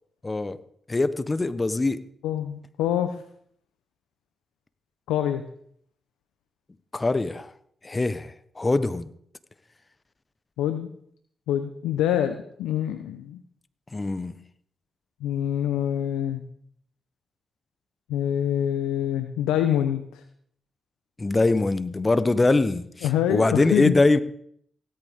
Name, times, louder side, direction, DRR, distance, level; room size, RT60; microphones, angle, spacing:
voice 1, 0.2-0.6 0.9-2.0 6.9-7.5 7.8-9.1 13.9-14.4 21.2-24.2, left 2 dB, 30° left, 1.1 m, -23 dB
voice 2, 2.2-3.2 5.1-5.4 10.6-10.9 11.5-13.4 15.2-16.4 18.1-20.2 23.0-24.0, left 10 dB, 85° left, 0.8 m, -25 dB
17.0 x 13.5 x 3.7 m
hypercardioid pair, 40°, 0 cm